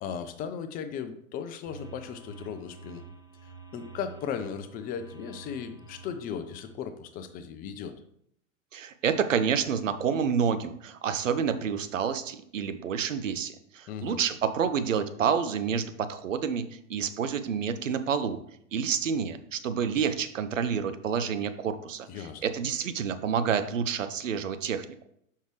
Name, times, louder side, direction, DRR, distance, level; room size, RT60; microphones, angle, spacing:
voice 1, 0.0-3.0 3.4-7.9 13.9-14.2 22.1-22.4, left 7 dB, 20° left, 9 dB, 0.5 m, -37 dB
sound 1, 1.7-6.8, right 5 dB, 10° right, 1.0 m, -49 dB
voice 2, 8.7-18.4 18.7-24.9, right 7 dB, 70° right, 11 dB, 0.8 m, -29 dB
6.5 x 5.5 x 3.2 m, 0.70 s
figure-of-eight pair, 95°, 40 cm